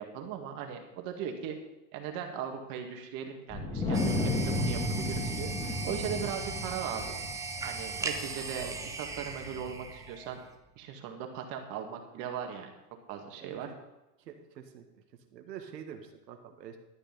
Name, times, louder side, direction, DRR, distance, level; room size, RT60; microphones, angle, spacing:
voice 1, 0.0-1.6 1.9-7.2 7.6-8.7 9.0-10.4 10.8-12.7 13.1-13.7, right 8 dB, 45° right, 3 dB, 2.0 m, -38 dB
Wind, 3.5-10.0, left 2 dB, 10° left, 1.7 m, -34 dB
sound 1, 3.9-10.5, right 4 dB, 5° right, 0.6 m, -39 dB
voice 2, 13.4-13.8 14.2-14.9 15.3-16.8, right 8 dB, 90° right, 5 dB, 1.8 m, -46 dB
12.5 x 6.8 x 5.4 m, 0.99 s
supercardioid pair, 135°, 49 cm